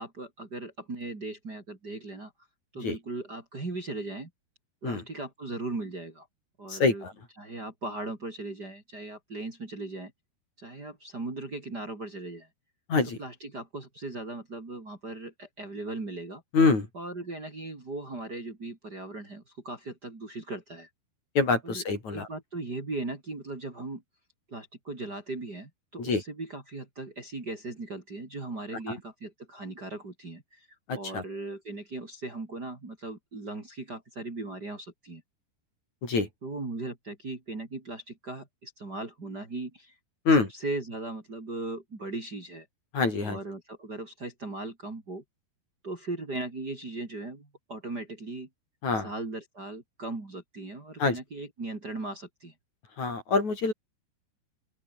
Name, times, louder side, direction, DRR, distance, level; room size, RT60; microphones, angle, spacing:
voice 1, 0.0-2.3 2.7-4.3 4.8-6.3 6.6-7.0 7.4-10.1 10.6-12.5 13.2-16.4 16.9-20.9 21.6-21.8 22.1-24.0 24.5-30.7 30.9-35.2 36.4-40.0 40.6-42.7 43.2-45.2 45.8-48.5 49.0-52.5, right 2 dB, 25° right, 3.9 m, -38 dB
voice 2, 6.7-7.1 12.9-13.2 16.5-16.9 21.3-22.3 26.0-26.2 28.9-29.0 30.9-31.2 36.0-36.3 40.2-40.5 42.9-43.4 48.8-49.1 51.0-51.2 53.0-53.7, left 4 dB, 45° left, 6.7 m, -25 dB
open air
omnidirectional pair, 4.6 m